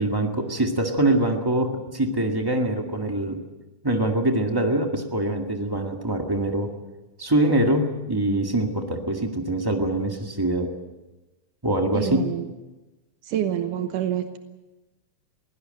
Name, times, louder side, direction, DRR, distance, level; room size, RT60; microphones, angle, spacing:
voice 1, 0.0-3.4 3.8-6.7 7.2-10.7 11.6-12.2, right 1 dB, 15° right, 3 dB, 0.9 m, -24 dB
voice 2, 11.9-12.5 13.2-14.4, right 11 dB, 80° right, 7 dB, 2.6 m, -27 dB
22.0 x 16.5 x 7.7 m, 1.1 s
omnidirectional pair, 3.7 m